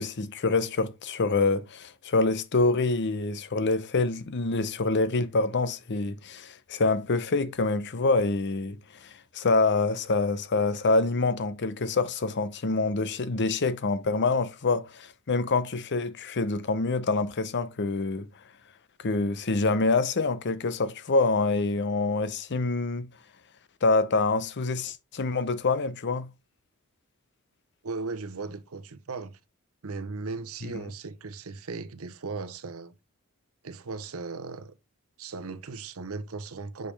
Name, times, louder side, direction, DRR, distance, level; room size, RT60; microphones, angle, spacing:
voice 1, 0.0-18.3 19.0-23.1 23.8-26.3, left 3 dB, 50° left, 0.7 m, -26 dB
voice 2, 27.8-29.4 29.8-32.9 33.6-34.7 35.2-36.9, right 4 dB, 65° right, 0.7 m, -37 dB
6.6 x 5.4 x 3.3 m
head